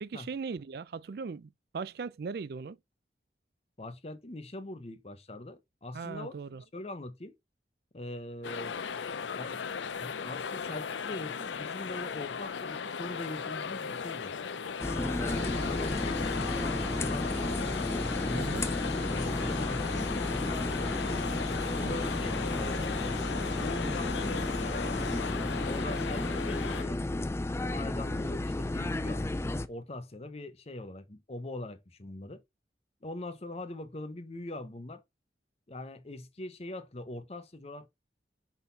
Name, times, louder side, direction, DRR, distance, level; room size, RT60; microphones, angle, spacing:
voice 1, 0.0-2.8 5.9-6.6 18.3-18.7 21.8-22.0, right 5 dB, 60° right, 0.4 m, -39 dB
voice 2, 3.8-6.3 6.7-7.3 7.9-8.8 9.3-9.6 10.0-14.3 14.9-18.5 18.9-21.1 21.7-23.1 23.6-27.2 27.7-32.4 33.0-35.0 35.7-37.9, left 1 dB, 35° left, 0.8 m, -42 dB
sound 1, 8.4-26.8, left 6 dB, 90° left, 0.5 m, -37 dB
sound 2, 14.8-29.7, left 2 dB, 15° left, 0.3 m, -33 dB
sound 3, 15.3-25.3, left 3 dB, 70° left, 1.3 m, -41 dB
5.7 x 4.1 x 4.0 m
head